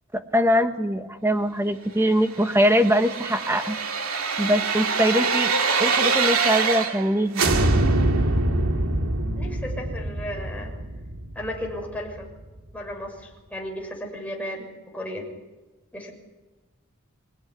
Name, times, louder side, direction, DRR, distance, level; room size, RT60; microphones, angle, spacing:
voice 1, 0.1-3.8 4.4-5.5 5.8-7.6, equal, 10° right, 7 dB, 1.5 m, -22 dB
sound 1, 2.3-7.1 7.3-12.2 12.6-12.7, right 3 dB, 75° right, 2.4 m, -24 dB
voice 2, 9.3-10.7 11.3-12.3 12.7-14.7 14.9-15.3 15.9-16.1, equal, 5° left, -1 dB, 6.7 m, -34 dB
27.5 x 17.5 x 9.7 m, 1.2 s
head